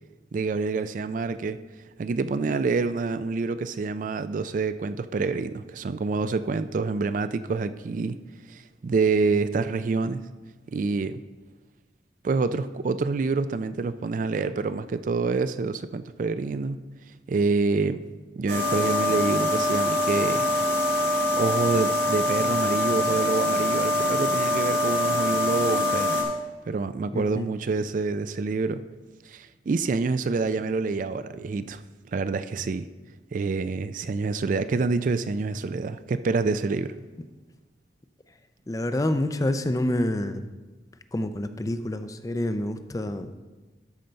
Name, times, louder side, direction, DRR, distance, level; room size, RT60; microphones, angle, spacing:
voice 1, 0.3-1.6 2.0-8.2 8.5-10.2 10.7-11.2 12.2-16.8 17.3-18.0 18.4-20.5 21.4-26.2 26.7-28.8 29.3-31.8 32.1-32.9 33.3-36.9, right 4 dB, 45° right, 13 dB, 0.3 m, -27 dB
sound 1, 18.5-26.2, left 2 dB, 70° right, 2.4 m, -24 dB
voice 2, 27.1-27.5 38.7-40.4 41.1-43.3, left 1 dB, 20° left, 10 dB, 0.4 m, -27 dB
13.0 x 5.3 x 4.4 m, 1.2 s
head